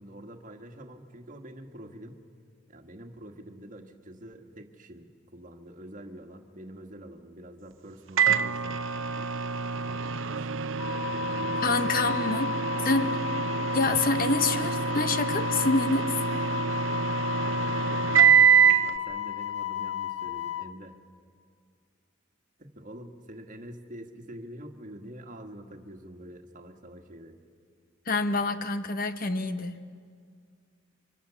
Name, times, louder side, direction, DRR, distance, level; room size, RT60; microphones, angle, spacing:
voice 1, 0.0-2.2 2.7-9.3 9.8-12.3 14.4-14.9 17.3-21.0 22.6-27.4, right 1 dB, 40° right, 4 dB, 1.6 m, -46 dB
Microwave oven, 8.2-18.9, right 7 dB, 85° right, 0.8 m, -25 dB
Wind instrument woodwind instrument, 10.8-20.7, left 12 dB, 90° left, 1.0 m, -34 dB
voice 2, 11.6-12.5 12.8-13.2 13.7-16.2 28.1-29.8, left 3 dB, 45° left, 10 dB, 1.0 m, -27 dB
25.5 x 24.5 x 7.0 m, 2.1 s
head